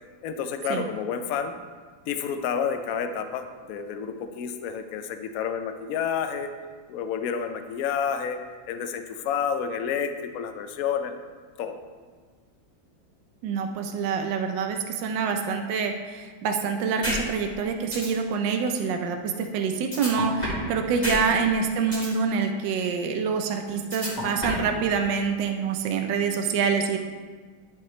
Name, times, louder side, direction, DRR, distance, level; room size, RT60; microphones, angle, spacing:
voice 1, 0.2-1.5 2.1-6.5 6.9-8.4 8.7-11.1 11.6-11.8, left 7 dB, 70° left, 7 dB, 0.8 m, -29 dB
voice 2, 13.4-27.0, right 5 dB, 75° right, 5 dB, 1.4 m, -26 dB
sound 1, 17.0-17.2 17.5-17.6 17.9-18.1 19.9-20.7 21.0-21.2 21.5-22.1 23.9-24.7, equal, 20° left, 2.7 m, -29 dB
11.0 x 5.6 x 3.2 m, 1.5 s
omnidirectional pair, 2.1 m